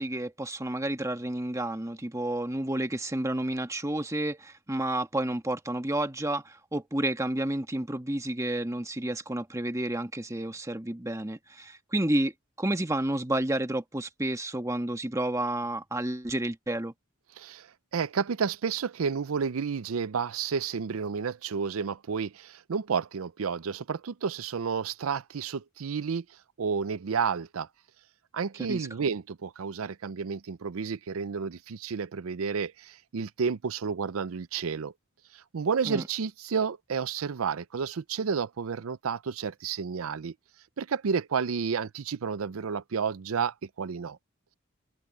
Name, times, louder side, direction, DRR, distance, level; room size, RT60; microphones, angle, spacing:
voice 1, 0.0-12.3 12.6-16.9 28.6-28.9 35.8-36.1, right 1 dB, 15° right, 1.4 m, -30 dB
voice 2, 17.4-17.7 17.9-26.2 26.6-27.7 28.3-34.9 35.3-40.3 40.8-44.2, right 6 dB, 85° right, 0.5 m, -31 dB
head